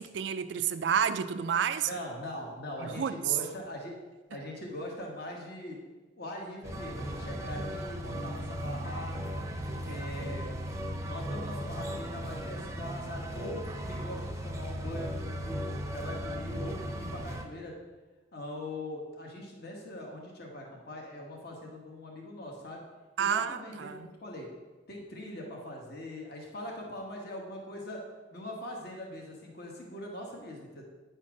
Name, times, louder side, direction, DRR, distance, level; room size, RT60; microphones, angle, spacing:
voice 1, 0.0-1.9 2.8-3.2 9.8-10.0 23.2-24.1, right 7 dB, 65° right, 0.4 m, -30 dB
voice 2, 1.8-3.9 4.3-5.8 6.2-9.4 9.8-10.5 11.0-15.6 15.9-17.7 18.3-22.8 23.2-24.5 24.9-28.0 28.3-30.8, left 1 dB, 55° left, 1.4 m, -41 dB
sound 1, 6.6-17.5, equal, 15° right, 0.6 m, -37 dB
9.3 x 4.4 x 6.0 m
head